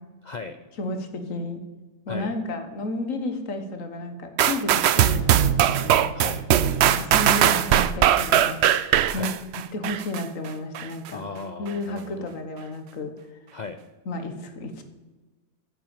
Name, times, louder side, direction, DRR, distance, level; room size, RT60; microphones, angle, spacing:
voice 1, 0.2-0.6 2.1-2.3 6.2-6.5 9.1-9.3 11.1-12.3 13.5-13.8, left 4 dB, 85° left, 9 dB, 0.3 m, -36 dB
voice 2, 0.8-1.6 2.1-6.1 6.9-9.4 9.7-11.2 11.6-13.1 14.0-14.8, left 1 dB, 60° left, 7 dB, 1.7 m, -32 dB
sound 1, 4.4-10.2 10.7-10.9, right 10 dB, 70° right, 0.6 m, -20 dB
9.8 x 7.5 x 8.4 m, 1.2 s
omnidirectional pair, 1.6 m